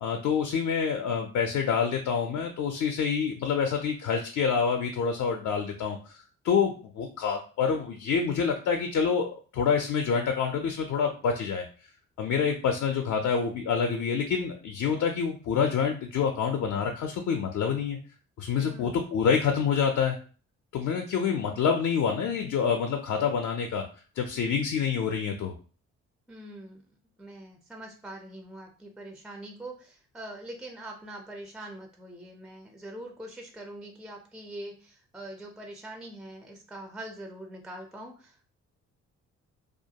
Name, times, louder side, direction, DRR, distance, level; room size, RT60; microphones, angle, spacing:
voice 1, 0.0-11.6 12.2-18.0 18.4-20.2 20.7-23.8 24.2-25.5, left 6 dB, 60° left, 4 dB, 0.4 m, -27 dB
voice 2, 18.5-19.0 26.3-26.8 27.2-38.4, right 1 dB, ahead, 2 dB, 0.3 m, -43 dB
2.4 x 2.2 x 2.7 m, 0.39 s
cardioid pair, 90°, 30 cm